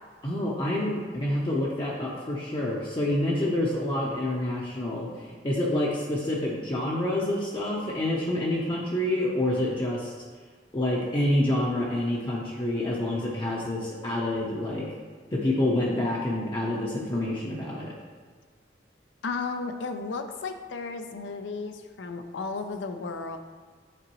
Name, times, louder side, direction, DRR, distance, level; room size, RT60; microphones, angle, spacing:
voice 1, 0.2-10.1 10.7-14.9 15.3-17.9, left 1 dB, 25° left, -4 dB, 0.6 m, -27 dB
voice 2, 19.2-23.4, left 4 dB, 85° left, 6 dB, 0.5 m, -34 dB
9.0 x 3.8 x 3.0 m, 1.5 s
head